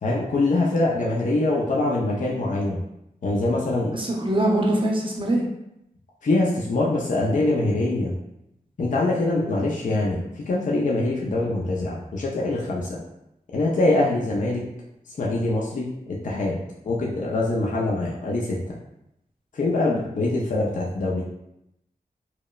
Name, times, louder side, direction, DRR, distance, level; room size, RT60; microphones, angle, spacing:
voice 1, 0.0-2.8 3.2-4.0 6.2-8.1 8.8-13.0 13.5-14.6 15.2-16.6 16.8-18.8 19.5-21.2, left 2 dB, 55° left, -3 dB, 0.4 m, -24 dB
voice 2, 3.9-5.4, right 1 dB, 30° right, -2 dB, 0.6 m, -23 dB
2.9 x 2.0 x 2.2 m, 0.84 s
wide cardioid pair, 70°, 16 cm